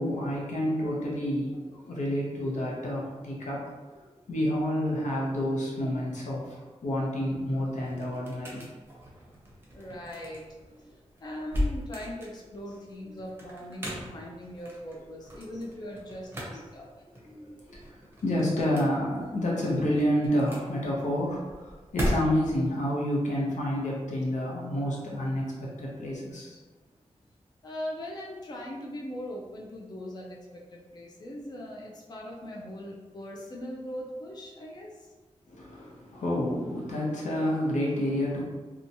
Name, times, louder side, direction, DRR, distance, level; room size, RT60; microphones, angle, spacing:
voice 1, 0.0-8.7 13.0-13.1 17.3-26.6 35.5-38.4, equal, 90° left, -4 dB, 0.7 m, -29 dB
sound 1, 7.3-22.7, equal, 20° right, 0.6 m, -38 dB
voice 2, 9.7-10.4 10.9-16.9 27.6-30.4 30.7-35.1, left 1 dB, 35° left, -2 dB, 0.4 m, -40 dB
2.8 x 2.2 x 2.6 m, 1.3 s
wide cardioid pair, 150°, 12 cm